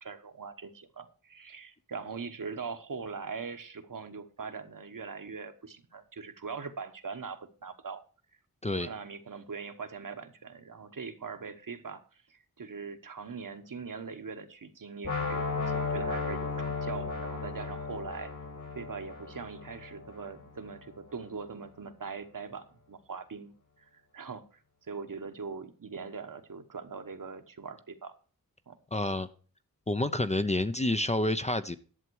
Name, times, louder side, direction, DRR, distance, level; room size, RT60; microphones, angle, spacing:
voice 1, 0.0-8.0 8.8-18.3 18.7-23.5 23.9-24.6 24.9-28.2 28.7-28.8, right 5 dB, 60° right, 1.2 m, -41 dB
sound 1, 15.0-21.0, left 4 dB, 55° left, 2.5 m, -35 dB
voice 2, 28.9-29.3 29.9-31.8, left 1 dB, 20° left, 0.6 m, -28 dB
11.0 x 7.4 x 4.6 m
wide cardioid pair, 90°, 36 cm